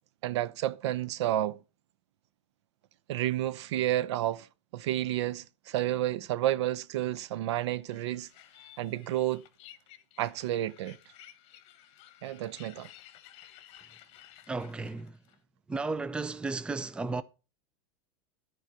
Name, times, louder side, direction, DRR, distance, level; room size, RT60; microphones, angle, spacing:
voice 1, 0.2-1.6 3.1-4.5 4.7-8.3 8.8-9.4 10.2-11.0 12.2-12.9, right 13 dB, 80° right, 0.6 m, -30 dB
sound 1, 7.9-15.4, left 13 dB, 45° left, 1.1 m, -55 dB
voice 2, 14.5-15.2 15.7-17.2, right 3 dB, 5° right, 0.4 m, -34 dB
10.5 x 4.7 x 6.1 m
supercardioid pair, 135°, 15 cm